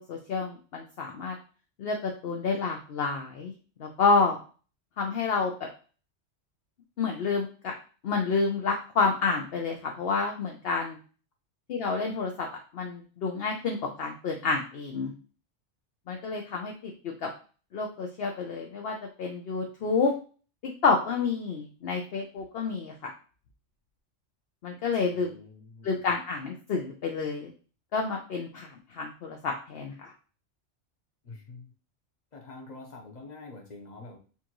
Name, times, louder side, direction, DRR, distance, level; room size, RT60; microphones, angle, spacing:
voice 1, 0.0-1.4 1.8-3.5 3.8-4.4 5.0-5.7 7.0-7.7 8.0-11.0 11.7-12.5 12.7-15.1 16.1-17.3 17.7-20.1 20.6-23.1 24.6-25.3 25.8-27.5 27.9-30.1, left 4 dB, 60° left, 1 dB, 0.8 m, -29 dB
voice 2, 25.1-25.9 31.2-31.7 32.3-34.2, left 3 dB, 40° left, 2 dB, 1.1 m, -46 dB
7.0 x 2.5 x 2.9 m, 0.38 s
omnidirectional pair, 1.2 m